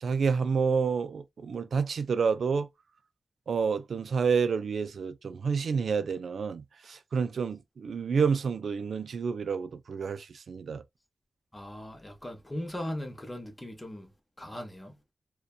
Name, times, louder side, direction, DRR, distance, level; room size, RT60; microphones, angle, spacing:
voice 1, 0.0-2.7 3.5-10.8, right 5 dB, 85° right, 0.3 m, -29 dB
voice 2, 11.5-14.1 14.4-14.9, left 1 dB, 15° left, 0.6 m, -38 dB
2.6 x 2.2 x 2.3 m
wide cardioid pair, 110°, 0 cm